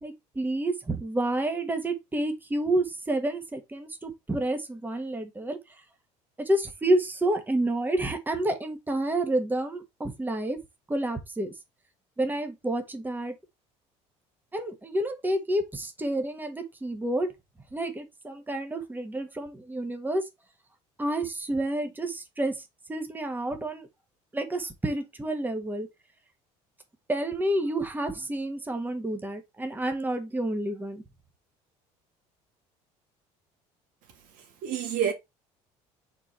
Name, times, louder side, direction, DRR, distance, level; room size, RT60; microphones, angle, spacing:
voice 1, 0.0-5.6 6.4-10.6 10.9-11.5 12.2-13.3 14.5-17.3 17.7-20.2 21.0-22.5 22.9-23.9 24.3-25.9 27.1-31.0, right 1 dB, 15° right, 1.5 m, -29 dB
voice 2, 34.4-35.1, right 9 dB, 75° right, 2.1 m, -29 dB
4.8 x 4.7 x 4.4 m
supercardioid pair, 90°, 14 cm